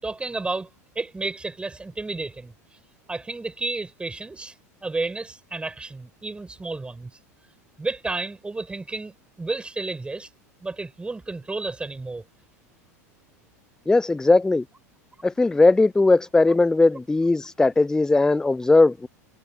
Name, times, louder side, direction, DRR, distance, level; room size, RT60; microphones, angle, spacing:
voice 1, 0.0-0.7 0.9-2.5 3.1-4.5 4.8-7.1 7.8-10.3 10.6-12.2, right 3 dB, 10° right, 6.6 m, -31 dB
voice 2, 13.9-14.6 15.2-19.1, left 3 dB, 5° left, 0.4 m, -18 dB
figure-of-eight pair, 85°, 9 cm